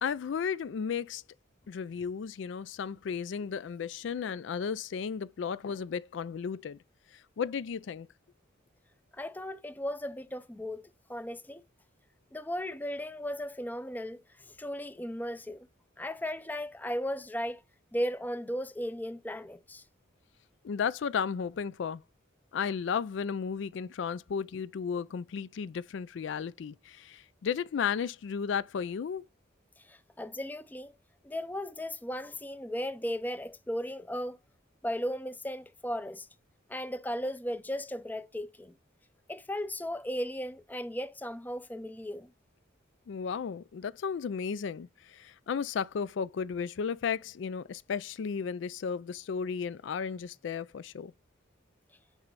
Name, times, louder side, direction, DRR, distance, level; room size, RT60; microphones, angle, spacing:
voice 1, 0.0-1.2 1.7-6.8 7.4-8.1 20.6-22.0 22.5-29.2 43.1-51.1, left 6 dB, 70° left, 0.4 m, -34 dB
voice 2, 9.1-11.6 12.3-15.7 16.0-17.6 17.9-19.8 29.8-30.9 31.2-34.4 34.8-36.3 36.7-38.7 39.3-42.3, equal, 10° left, 0.4 m, -36 dB
8.1 x 3.2 x 5.4 m
head